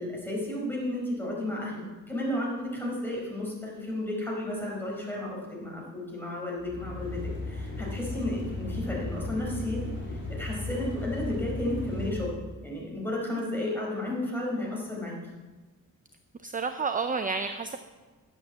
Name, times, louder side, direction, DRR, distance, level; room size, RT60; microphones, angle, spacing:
voice 1, 0.0-7.2 7.5-12.4 12.6-15.2, left 1 dB, 5° left, -4 dB, 4.8 m, -33 dB
sound 1, 6.6-12.1, left 2 dB, 35° left, 3.7 m, -35 dB
voice 2, 16.4-17.8, right 4 dB, 25° right, 8 dB, 0.5 m, -30 dB
11.5 x 8.0 x 7.5 m, 1.3 s
wide cardioid pair, 125°, 34 cm